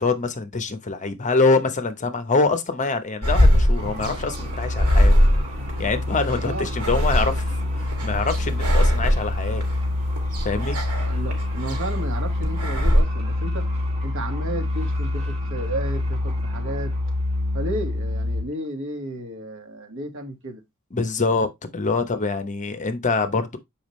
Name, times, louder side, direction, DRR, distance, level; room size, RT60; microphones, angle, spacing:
voice 1, 0.0-5.1 5.8-7.5 8.0-9.6 10.4-10.8 20.9-23.6, left 3 dB, 35° left, 0.9 m, -24 dB
sound 1, 3.2-13.0, equal, 75° right, 2.4 m, -22 dB
sound 2, 3.7-18.4, left 2 dB, 30° right, 2.1 m, -27 dB
voice 2, 6.4-6.7 11.0-13.7 14.0-16.9 17.5-20.6, right 1 dB, 60° right, 1.9 m, -33 dB
7.1 x 5.3 x 3.2 m
head